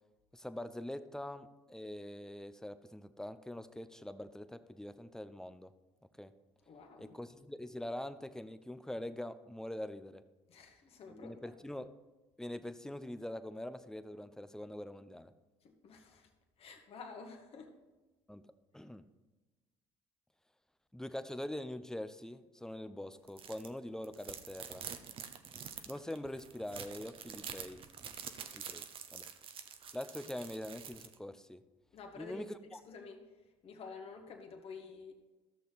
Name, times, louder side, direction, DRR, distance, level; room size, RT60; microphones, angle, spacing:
voice 1, 0.3-5.7 6.2-6.3 7.0-10.2 11.1-11.9 12.4-15.3 18.3-18.4 18.7-19.0 20.9-24.8 25.9-27.8 28.5-28.8 29.1-29.3 29.9-31.6 32.2-32.8, left 1 dB, 5° left, 12 dB, 0.6 m, -43 dB
voice 2, 6.7-7.2 10.5-11.5 15.6-16.3 16.6-17.8 31.9-33.2 33.6-35.1, left 4 dB, 55° left, 3 dB, 1.8 m, -50 dB
sound 1, 23.3-23.7 24.0-31.1, right 7 dB, 50° right, 0.9 m, -47 dB
14.0 x 6.5 x 4.1 m, 1.2 s
supercardioid pair, 75°, 12 cm